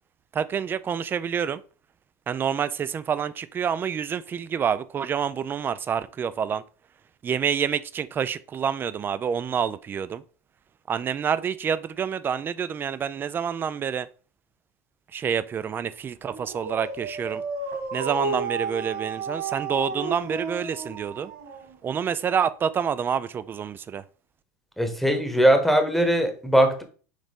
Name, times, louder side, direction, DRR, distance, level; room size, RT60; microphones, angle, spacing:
voice 1, 0.3-1.6 2.3-6.6 7.2-10.2 10.9-14.1 15.1-17.4 17.9-21.3 21.8-24.0, right 7 dB, 25° right, 0.5 m, -28 dB
Dog, 16.3-22.0, right 4 dB, 55° right, 2.3 m, -32 dB
voice 2, 24.8-26.8, right 1 dB, ahead, 1.2 m, -20 dB
6.5 x 3.2 x 5.2 m
hypercardioid pair, 110°, 8 cm